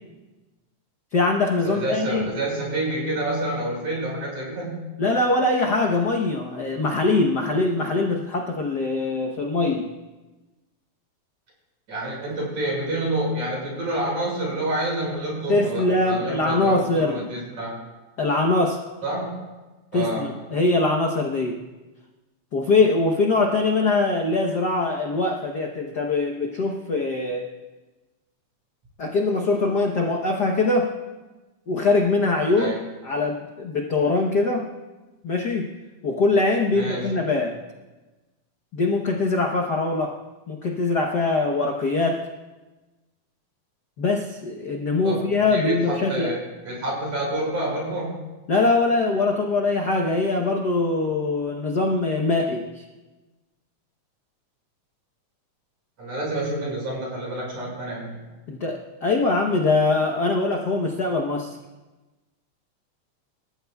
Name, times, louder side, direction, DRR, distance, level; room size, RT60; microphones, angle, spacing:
voice 1, 1.1-2.2 5.0-9.9 15.5-17.3 18.2-18.8 19.9-21.6 22.5-27.5 29.0-30.9 31.7-32.8 33.0-34.7 35.2-35.7 36.0-37.6 38.7-40.2 40.5-42.2 44.0-46.3 48.5-52.8 58.5-61.6, left 3 dB, 75° left, 1 dB, 0.9 m, -22 dB
voice 2, 1.6-4.8 11.9-17.7 19.0-19.3 19.9-20.2 32.6-32.8 36.7-37.1 45.0-45.2 45.5-46.4 46.6-48.2 56.0-58.2, right 1 dB, 65° right, -3 dB, 7.0 m, -28 dB
27.5 x 14.5 x 2.4 m, 1.2 s
omnidirectional pair, 3.5 m